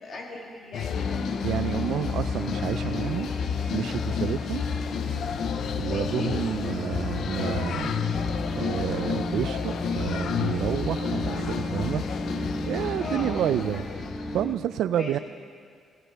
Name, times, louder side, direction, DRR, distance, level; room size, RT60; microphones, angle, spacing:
voice 1, 0.0-1.3 5.9-6.4 12.9-13.4 14.9-15.2, left 3 dB, 55° left, -1 dB, 2.6 m, -37 dB
sound 1, 0.7-14.4, left 8 dB, 70° left, 0.5 m, -31 dB
sound 2, 0.9-14.6, left 1 dB, 5° left, 1.0 m, -35 dB
voice 2, 1.4-3.3 3.7-4.6 5.8-8.0 8.6-12.1 12.7-13.9 14.3-15.2, right 11 dB, 80° right, 12 dB, 0.3 m, -29 dB
sound 3, 6.7-13.5, left 1 dB, 25° left, 0.6 m, -36 dB
17.0 x 16.5 x 3.4 m, 2.2 s
cardioid pair, 90°, 0 cm